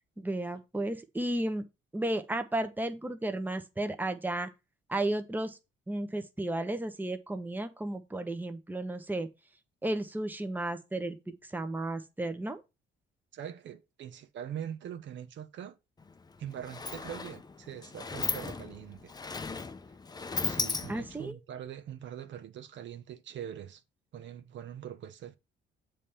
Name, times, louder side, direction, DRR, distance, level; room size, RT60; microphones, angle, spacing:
voice 1, 0.2-1.6 1.9-4.5 4.9-5.6 5.9-9.3 9.8-12.6 20.9-21.4, right 1 dB, 10° right, 0.9 m, -33 dB
voice 2, 13.3-15.7 16.4-19.1 20.4-23.8 24.1-25.4, right 9 dB, 70° right, 0.8 m, -42 dB
Sliding door, 16.0-16.1 16.4-21.3, left 4 dB, 20° left, 0.5 m, -36 dB
7.2 x 3.4 x 5.6 m
cardioid pair, 90°, 20 cm